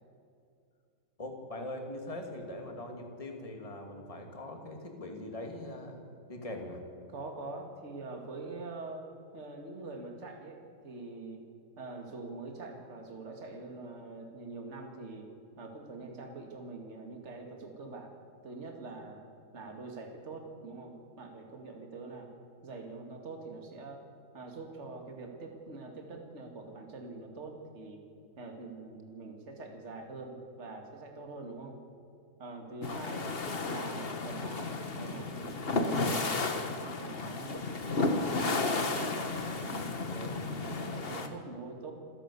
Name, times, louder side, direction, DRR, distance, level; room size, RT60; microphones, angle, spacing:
voice 1, 1.2-6.0 6.3-6.8, left 1 dB, 15° left, 3 dB, 2.3 m, -41 dB
voice 2, 7.1-9.1 9.3-11.4 11.8-15.3 15.6-18.1 18.4-19.2 19.5-22.3 22.6-24.1 24.3-28.0 28.4-31.8 32.4-33.3 33.6-37.7 37.9-41.9, right 3 dB, 35° right, 2 dB, 2.4 m, -44 dB
sound 1, 32.8-41.3, left 3 dB, 35° left, 1.4 m, -33 dB
27.0 x 11.5 x 8.4 m, 2.5 s
omnidirectional pair, 2.1 m